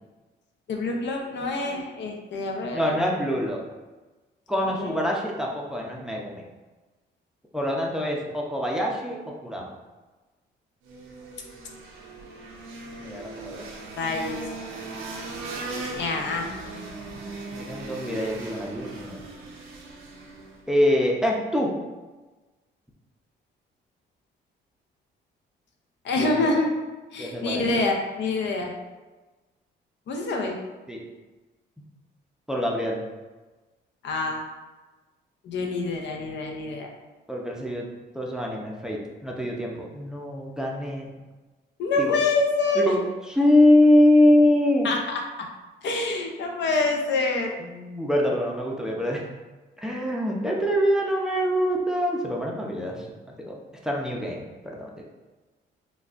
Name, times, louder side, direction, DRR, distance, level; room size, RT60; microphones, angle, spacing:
voice 1, 0.7-3.0 4.6-5.0 14.0-14.4 16.0-16.5 26.0-26.7 27.1-28.7 30.1-30.6 34.0-34.4 35.4-36.9 41.8-43.0 44.8-45.2 45.8-47.5, left 3 dB, 65° left, 2 dB, 0.6 m, -26 dB
voice 2, 2.7-3.6 4.5-6.4 7.5-9.7 13.0-13.6 17.5-19.2 20.7-21.7 26.2-26.3 27.2-27.6 30.9-31.0 32.5-33.0 37.3-37.8 38.1-41.1 42.0-42.2 42.8-43.0 43.3-44.9 47.6-49.2 49.8-53.1 53.4-53.6 53.8-55.0, left 1 dB, 5° right, -2 dB, 0.5 m, -24 dB
sound 1, 10.8-20.6, right 2 dB, 85° right, 0.6 m, -38 dB
4.0 x 2.3 x 2.4 m, 1.2 s
cardioid pair, 90°, 20 cm